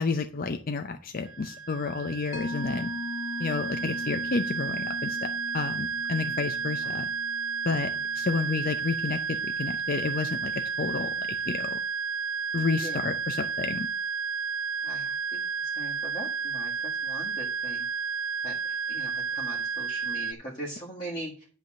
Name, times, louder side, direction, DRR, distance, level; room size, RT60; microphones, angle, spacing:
voice 1, 0.0-2.9 3.4-5.3 5.5-7.1 7.6-11.1 11.5-11.8 12.5-13.9, left 4 dB, 45° left, 6 dB, 0.5 m, -30 dB
sound 1, 1.3-20.3, right 6 dB, 80° right, 0.4 m, -32 dB
Mallet percussion, 2.3-9.4, left 3 dB, 70° left, 1.3 m, -40 dB
voice 2, 12.8-13.2 14.8-15.5 15.7-17.8 18.4-21.5, right 1 dB, 25° left, -5 dB, 1.7 m, -41 dB
10.5 x 3.5 x 7.3 m, 0.41 s
head